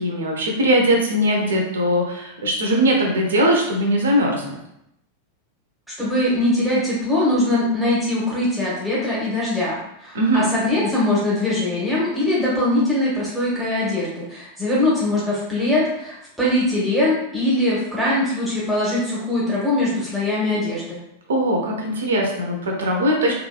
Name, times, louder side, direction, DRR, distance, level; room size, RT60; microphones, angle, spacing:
voice 1, 0.0-4.6 10.1-10.5 21.3-23.3, equal, 65° right, 0 dB, 0.6 m, -20 dB
voice 2, 6.0-21.0, left 1 dB, 5° right, -7 dB, 0.8 m, -22 dB
3.0 x 2.5 x 2.2 m, 0.79 s
figure-of-eight pair, 90°, 0 cm